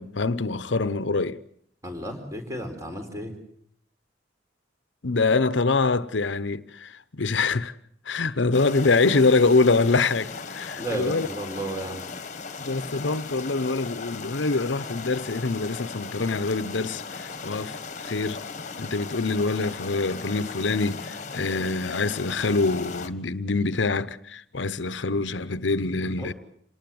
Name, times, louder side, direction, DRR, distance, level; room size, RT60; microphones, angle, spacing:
voice 1, 0.0-1.4 5.0-7.7 8.0-11.3 12.6-18.4 18.8-26.3, left 3 dB, 85° left, 0.9 m, -25 dB
voice 2, 1.8-3.3 10.7-12.1 26.2-26.3, right 1 dB, 20° right, 4.5 m, -33 dB
sound 1, 8.5-23.1, left 4 dB, 40° left, 1.5 m, -37 dB
27.0 x 19.0 x 7.8 m
head